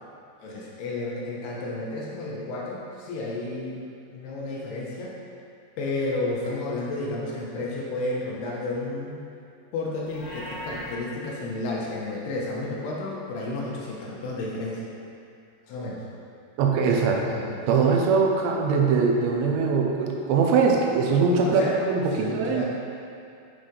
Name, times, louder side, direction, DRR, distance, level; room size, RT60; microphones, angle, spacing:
voice 1, 0.4-5.1 5.8-9.2 9.7-14.8 15.7-16.0 16.8-17.6 21.4-21.8 22.1-22.7, left 2 dB, 75° left, -3 dB, 2.8 m, -32 dB
Livestock farm animals working animals, 10.1-11.0, left 1 dB, 45° left, 1.5 m, -37 dB
voice 2, 16.6-17.2 17.7-22.7, right 5 dB, 80° right, 0 dB, 3.1 m, -22 dB
9.5 x 5.7 x 5.1 m, 2.5 s
omnidirectional pair, 5.2 m